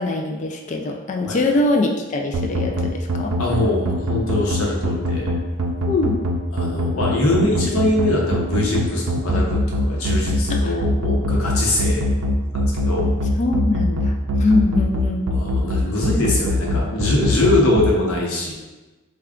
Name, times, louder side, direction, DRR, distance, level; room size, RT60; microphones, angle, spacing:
voice 1, 0.0-3.3 5.9-6.2 10.5-10.7 13.4-14.1 14.4-15.3, left 2 dB, 35° left, 2 dB, 0.3 m, -22 dB
sound 1, 2.3-17.9, left 1 dB, 85° right, 0.4 m, -22 dB
voice 2, 3.4-5.3 6.5-12.1 12.5-13.1 15.3-18.5, left 1 dB, 75° left, -2 dB, 0.8 m, -22 dB
3.4 x 2.3 x 3.6 m, 1.2 s
head